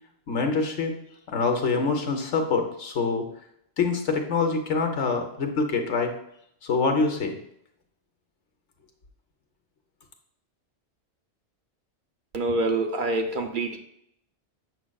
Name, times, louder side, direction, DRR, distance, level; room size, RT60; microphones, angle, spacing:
voice 1, 0.3-1.0 1.3-3.3 3.8-6.1 6.6-7.4, left 4 dB, 90° left, 4 dB, 1.2 m, -25 dB
voice 2, 12.3-13.8, right 2 dB, 50° right, 4 dB, 0.8 m, -26 dB
7.7 x 6.2 x 2.3 m, 0.73 s
omnidirectional pair, 1.2 m